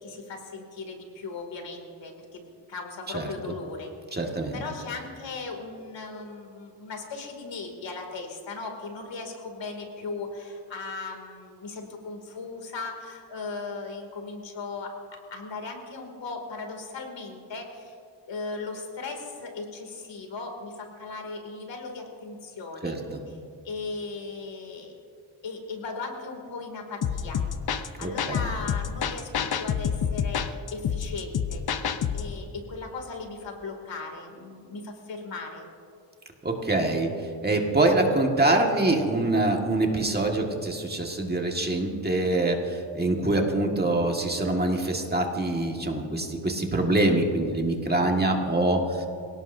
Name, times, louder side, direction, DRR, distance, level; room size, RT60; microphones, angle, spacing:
voice 1, 0.0-3.9 4.5-14.9 15.3-17.9 18.3-23.0 23.6-24.9 25.4-27.4 28.0-30.4 30.7-31.6 32.1-35.7, left 3 dB, 75° left, 3 dB, 2.7 m, -37 dB
voice 2, 3.1-3.5 4.1-4.6 22.8-23.2 28.0-28.5 36.4-37.1 37.4-49.1, right 2 dB, 20° right, 1 dB, 1.8 m, -25 dB
sound 1, 27.0-32.3, left 7 dB, 55° left, 0.8 m, -28 dB
26.5 x 17.5 x 2.7 m, 2.5 s
wide cardioid pair, 110°, 44 cm